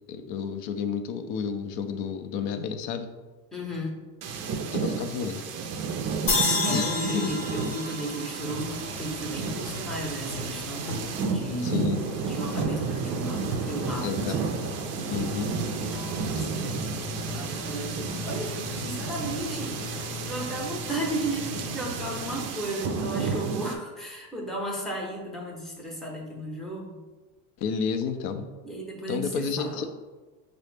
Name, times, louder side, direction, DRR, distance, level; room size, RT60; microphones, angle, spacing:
voice 1, 0.1-3.1 4.7-5.4 6.7-7.4 11.6-12.0 14.0-14.3 15.1-15.5 16.4-16.5 27.6-28.5 29.1-29.8, left 6 dB, 60° left, 7 dB, 0.6 m, -30 dB
voice 2, 3.5-4.0 6.6-10.9 11.3-11.8 12.3-14.5 16.3-16.9 17.3-19.8 20.2-27.0 28.6-29.8, right 1 dB, ahead, -2 dB, 0.7 m, -34 dB
sound 1, 4.2-23.8, right 5 dB, 35° right, 0.4 m, -32 dB
sound 2, 6.3-9.5, left 3 dB, 30° left, 0.9 m, -30 dB
sound 3, 8.4-22.5, left 1 dB, 75° left, 1.0 m, -38 dB
5.3 x 2.0 x 3.3 m, 1.2 s
supercardioid pair, 100°, 45 cm